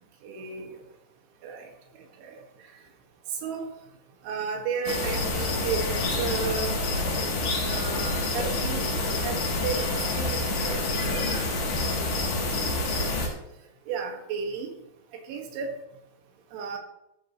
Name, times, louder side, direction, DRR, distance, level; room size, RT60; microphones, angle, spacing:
voice 1, 0.2-0.7 1.4-1.7 2.2-2.4 3.4-3.7 4.2-6.7 7.6-11.0 13.9-14.7 15.3-15.7 16.5-16.8, right 5 dB, 80° right, 2 dB, 4.4 m, -33 dB
sound 1, 4.9-13.3, left 2 dB, 75° left, 6.2 m, -27 dB
14.0 x 14.0 x 3.2 m, 0.84 s
omnidirectional pair, 5.5 m